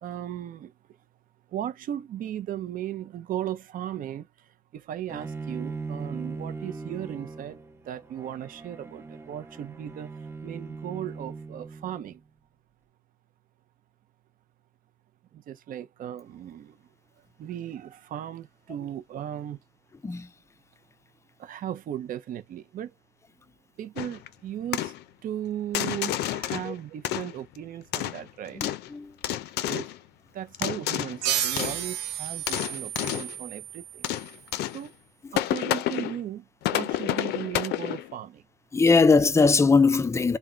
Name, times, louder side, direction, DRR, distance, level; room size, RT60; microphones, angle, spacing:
voice 1, 0.0-0.7 1.5-7.6 7.8-10.1 10.4-12.2 15.3-16.8 17.4-19.6 21.4-22.9 23.8-24.9 25.2-28.6 29.7-29.9 30.3-34.1 34.7-34.9 35.3-38.4, right 11 dB, 55° right, 0.6 m, -36 dB
Bowed string instrument, 5.1-12.2, right 4 dB, 15° right, 0.7 m, -39 dB
sound 1, 24.0-24.3 24.7-25.0 25.7-26.7 27.0-27.6 27.9-28.9 29.2-30.0 30.5-31.2 31.6-31.8 32.3-33.4 34.0-34.9 35.4-36.2 36.6-38.1, left 13 dB, 75° left, 0.5 m, -30 dB
voice 2, 28.5-29.1 38.7-40.4, left 4 dB, 15° left, 0.4 m, -20 dB
sound 2, 31.2-34.5, right 10 dB, 85° right, 0.8 m, -32 dB
3.5 x 2.2 x 3.7 m
cardioid pair, 110°, 17 cm